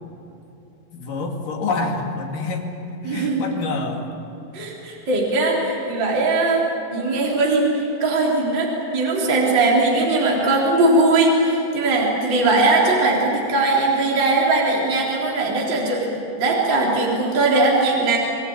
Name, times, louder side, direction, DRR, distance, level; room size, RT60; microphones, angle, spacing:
voice 1, 0.9-2.7 3.0-4.0, left 3 dB, 55° left, 1 dB, 4.0 m, -27 dB
voice 2, 3.0-3.5 4.5-18.2, right 2 dB, 30° right, -3 dB, 4.2 m, -20 dB
28.0 x 21.0 x 8.9 m, 2.9 s
omnidirectional pair, 4.7 m